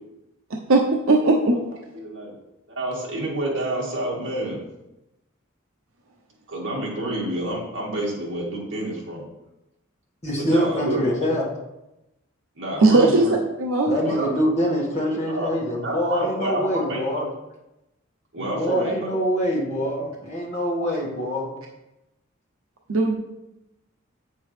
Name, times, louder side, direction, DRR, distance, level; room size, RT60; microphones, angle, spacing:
voice 1, 0.5-1.6 12.8-13.3 13.6-14.0 22.9-23.2, right 3 dB, 90° right, 0 dB, 0.9 m, -18 dB
voice 2, 1.9-2.4 2.7-4.6 6.5-9.2 10.4-11.3 12.6-13.3 14.0-14.3 15.3-15.5 15.8-17.3 18.3-19.1, right 1 dB, 65° right, -5 dB, 2.0 m, -28 dB
voice 3, 10.2-11.4 13.9-17.2 18.4-21.5, equal, 30° left, -4 dB, 1.9 m, -24 dB
8.1 x 6.8 x 3.3 m, 0.92 s
head